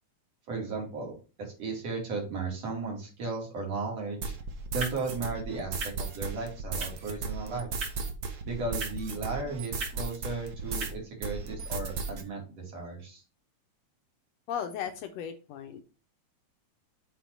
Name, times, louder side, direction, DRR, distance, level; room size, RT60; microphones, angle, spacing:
voice 1, 0.5-4.3 4.7-7.8 8.4-13.2, right 3 dB, 60° right, -1 dB, 3.6 m, -35 dB
sound 1, 4.2-10.9, right 3 dB, 35° right, 2.9 m, -44 dB
sound 2, 4.2-10.9 11.2-12.2, right 4 dB, 80° right, 0.8 m, -36 dB
voice 2, 14.5-15.8, left 8 dB, 75° left, 6 dB, 1.7 m, -36 dB
6.8 x 4.4 x 4.6 m, 0.33 s
omnidirectional pair, 3.3 m